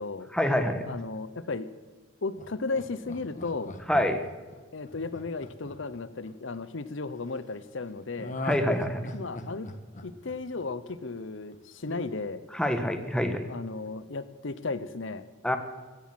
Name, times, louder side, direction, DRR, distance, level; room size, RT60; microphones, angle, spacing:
voice 1, 0.3-0.9 3.9-4.2 8.4-9.0 12.5-13.5 15.4-15.6, left 1 dB, 5° left, 6 dB, 1.4 m, -26 dB
voice 2, 0.9-1.7 2.2-3.7 4.7-8.4 9.1-9.7 10.0-12.4 13.5-15.3, left 3 dB, 65° left, 14 dB, 0.8 m, -35 dB
Laughter, 2.4-6.6 8.2-11.2 11.5-11.6, left 1 dB, 35° left, 1.4 m, -39 dB
16.0 x 11.5 x 7.7 m, 1.3 s
head